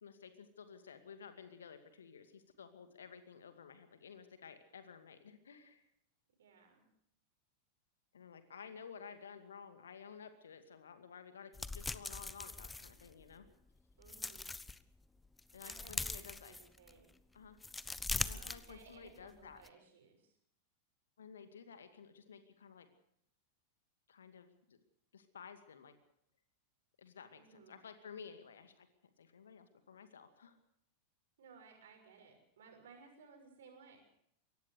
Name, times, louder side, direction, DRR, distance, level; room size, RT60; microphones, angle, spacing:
voice 1, 0.0-5.8 8.1-13.5 15.5-16.6 17.3-17.6 18.3-19.6 21.2-22.9 24.1-24.8 25.1-25.9 27.0-28.9 29.2-30.6, left 6 dB, 65° left, 9 dB, 2.3 m, -54 dB
voice 2, 6.4-6.9 14.0-14.5 15.6-17.1 18.2-20.3 27.3-27.8 31.4-34.0, right 5 dB, 60° right, 4 dB, 6.4 m, -60 dB
sound 1, 11.5-13.5 13.9-14.8 15.2-17.0 17.4-19.2 19.5-19.7, left 3 dB, 10° left, 0.8 m, -41 dB
23.5 x 18.0 x 6.6 m, 0.70 s
figure-of-eight pair, 90°, 0 cm